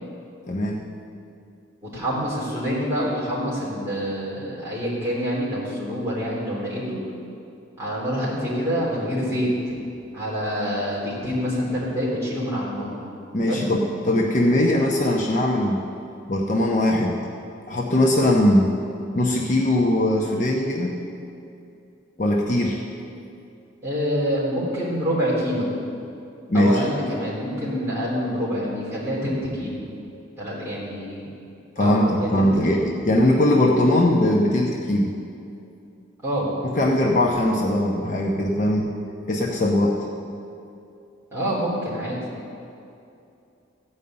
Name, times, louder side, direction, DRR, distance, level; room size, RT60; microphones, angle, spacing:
voice 1, 0.5-0.8 13.3-15.8 16.3-17.2 17.7-18.7 19.1-20.9 22.2-22.8 26.5-26.8 31.8-35.1 36.6-38.9 39.3-40.1, left 1 dB, 40° left, -1 dB, 0.9 m, -20 dB
voice 2, 1.8-7.0 7.8-9.5 10.1-12.9 13.5-13.7 23.8-25.7 26.5-29.8 30.4-31.3 31.8-32.8 36.2-36.5 41.3-42.2, equal, 15° right, -8 dB, 3.6 m, -26 dB
15.0 x 5.5 x 8.7 m, 2.6 s
head